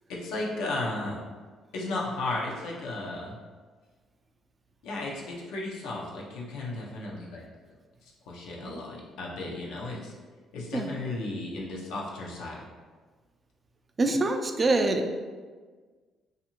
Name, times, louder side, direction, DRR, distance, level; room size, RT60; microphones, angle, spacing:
voice 1, 0.1-1.2 1.7-3.3 4.8-7.4 8.0-10.1 10.5-12.6, left 2 dB, 85° left, -3 dB, 0.6 m, -34 dB
voice 2, 14.0-15.1, right 2 dB, 30° right, 5 dB, 0.3 m, -25 dB
2.6 x 2.5 x 2.8 m, 1.5 s
cardioid pair, 80°, 0 cm